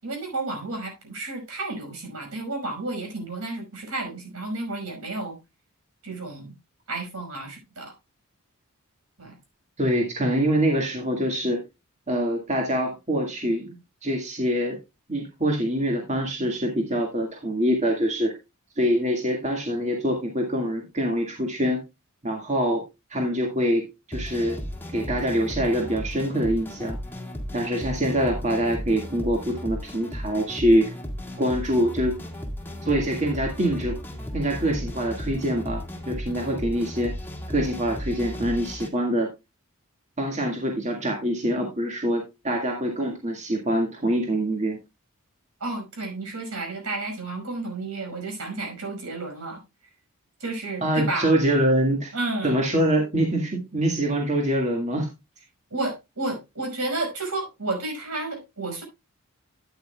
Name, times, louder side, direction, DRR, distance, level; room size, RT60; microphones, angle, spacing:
voice 1, 0.0-5.4 6.0-6.5 6.9-7.9 9.2-9.4 45.6-49.6 50.4-51.3 52.1-52.6 55.7-58.8, right 2 dB, 75° right, 3 dB, 5.4 m, -31 dB
voice 2, 9.8-11.6 12.1-14.8 15.1-18.3 18.8-21.8 22.2-22.8 23.1-24.6 24.9-27.0 27.5-30.9 31.4-32.2 32.8-34.0 34.3-37.1 37.5-39.3 40.2-44.8 50.8-52.1 52.4-55.1, equal, 30° right, 1 dB, 2.0 m, -24 dB
sound 1, 24.1-38.9, equal, 10° left, 1.9 m, -35 dB
13.0 x 9.2 x 2.3 m, 0.23 s
head